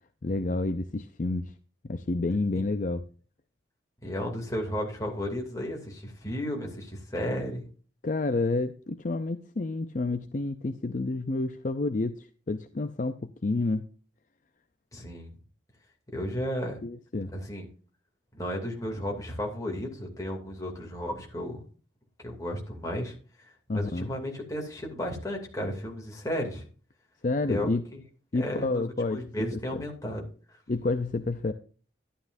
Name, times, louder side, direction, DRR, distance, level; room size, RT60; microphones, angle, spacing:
voice 1, 0.2-1.5 1.8-3.1 8.0-13.8 16.8-17.3 23.7-24.1 27.2-27.8 28.3-29.2 30.7-31.5, left 2 dB, 40° left, 9 dB, 0.5 m, -29 dB
voice 2, 4.0-7.7 14.9-15.3 16.1-16.8 17.3-17.7 18.3-21.7 22.2-26.6 27.5-28.0 28.3-30.2, equal, 20° left, 0 dB, 2.7 m, -34 dB
11.5 x 11.5 x 2.6 m, 0.39 s
head